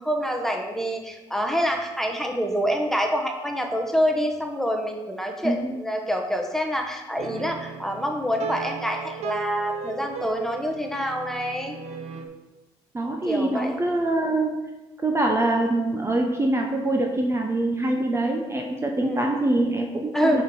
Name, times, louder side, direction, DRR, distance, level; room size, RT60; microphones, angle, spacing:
voice 1, 0.0-11.8 13.2-13.8 19.0-19.2 20.1-20.4, equal, 5° left, 2 dB, 1.2 m, -26 dB
voice 2, 5.4-5.7 12.9-14.6 15.0-20.4, right 2 dB, 20° right, 2 dB, 0.9 m, -24 dB
sound 1, 7.2-12.3, right 6 dB, 65° right, 0.7 m, -36 dB
6.5 x 4.4 x 4.8 m, 1.1 s
supercardioid pair, 65°, 12 cm